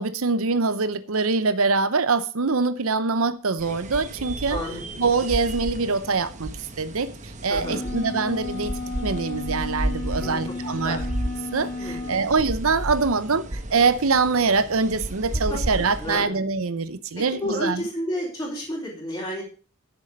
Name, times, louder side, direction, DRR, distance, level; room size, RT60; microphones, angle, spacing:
voice 1, 0.0-4.6 5.0-6.5 6.8-8.7 9.0-11.0 11.5-17.8, right 4 dB, 70° right, 0.8 m, -24 dB
sound 1, 3.6-16.3, right 1 dB, 35° right, 1.1 m, -33 dB
voice 2, 4.5-4.8 7.5-7.9 10.2-10.4 10.7-11.0 11.8-12.3 15.3-15.6 16.0-16.3 17.2-19.4, left 1 dB, 15° left, 4.0 m, -31 dB
sound 2, 7.6-12.2, left 3 dB, 40° left, 2.2 m, -33 dB
10.5 x 7.6 x 5.2 m
head